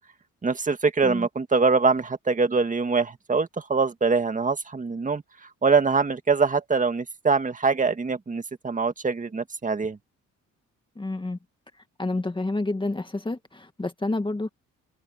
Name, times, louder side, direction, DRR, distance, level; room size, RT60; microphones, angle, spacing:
voice 1, 0.4-5.2 5.6-10.0, right 4 dB, 25° right, 1.9 m, -23 dB
voice 2, 11.0-11.4 12.0-14.5, left 2 dB, 15° left, 2.1 m, -29 dB
cardioid pair, 90°, 30 cm